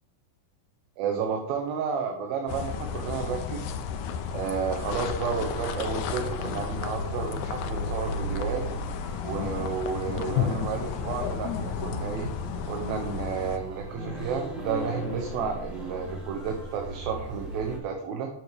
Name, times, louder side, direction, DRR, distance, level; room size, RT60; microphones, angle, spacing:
voice 1, 1.0-3.7 4.3-8.6 9.2-12.3 12.7-18.3, right 6 dB, 75° right, 3 dB, 2.8 m, -31 dB
sound 1, 2.5-13.6, left 7 dB, 85° left, 1.6 m, -33 dB
sound 2, 4.8-17.8, equal, ahead, 3.0 m, -38 dB
8.7 x 7.0 x 5.0 m, 0.79 s
omnidirectional pair, 4.4 m